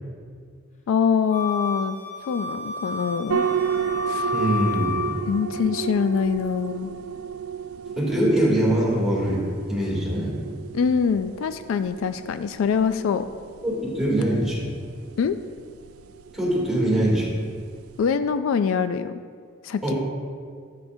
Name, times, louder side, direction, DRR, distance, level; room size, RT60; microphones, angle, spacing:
voice 1, 0.9-2.0 2.3-3.5 4.1-4.3 5.3-6.9 10.7-13.3 15.2-15.4 18.0-19.1 19.6-19.9, left 6 dB, 70° left, 11 dB, 0.3 m, -24 dB
Wind instrument woodwind instrument, 1.3-5.3, left 4 dB, 35° left, 0.8 m, -31 dB
sound 1, 3.3-18.1, right 7 dB, 80° right, 0.3 m, -33 dB
voice 2, 4.3-5.2 8.0-9.4 9.7-10.4 13.6-14.7 16.3-17.3 19.8-19.9, right 1 dB, ahead, -6 dB, 2.6 m, -23 dB
13.5 x 7.6 x 2.6 m, 2.1 s
head